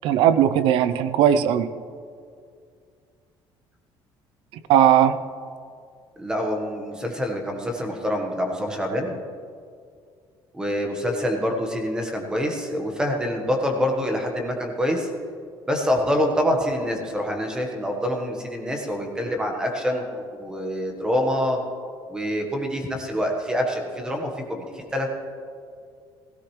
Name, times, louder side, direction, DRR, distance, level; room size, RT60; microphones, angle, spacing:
voice 1, 0.0-1.7 4.7-5.2, right 10 dB, 70° right, 13 dB, 0.6 m, -18 dB
voice 2, 6.2-9.2 10.5-15.1 15.7-21.6 22.1-25.2, equal, 10° right, 2 dB, 1.4 m, -26 dB
16.5 x 16.5 x 3.2 m, 2.3 s
cardioid pair, 170°, 9 cm